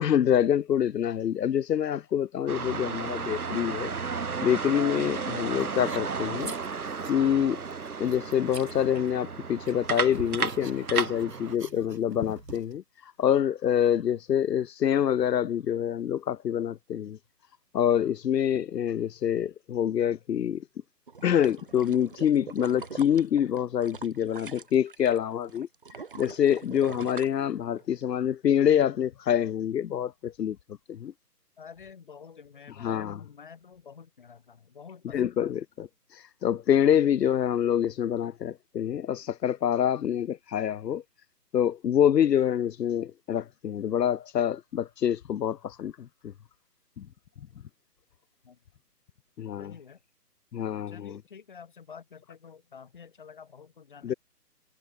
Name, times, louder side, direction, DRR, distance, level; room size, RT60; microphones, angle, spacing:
voice 1, 0.0-3.9 4.4-6.5 7.1-7.6 8.0-17.2 17.7-20.6 21.2-25.7 26.2-30.6 30.9-31.1 32.8-33.2 35.1-41.0 41.5-46.1 47.0-47.1 49.4-49.7 50.5-51.1 54.0-54.1, left 9 dB, 85° left, 0.7 m, -26 dB
sound 1, 2.5-11.6, right 5 dB, 65° right, 2.8 m, -33 dB
sound 2, 5.5-7.3 7.7-9.4 9.6-12.8, right 4 dB, 85° right, 6.8 m, -45 dB
sound 3, 21.1-25.2 25.5-28.0 28.4-28.5, right 5 dB, 35° right, 1.3 m, -43 dB
voice 2, 31.6-35.5 48.4-48.6 49.6-50.0 50.9-54.2, left 6 dB, 30° left, 2.5 m, -48 dB
hypercardioid pair, 175°, 48 cm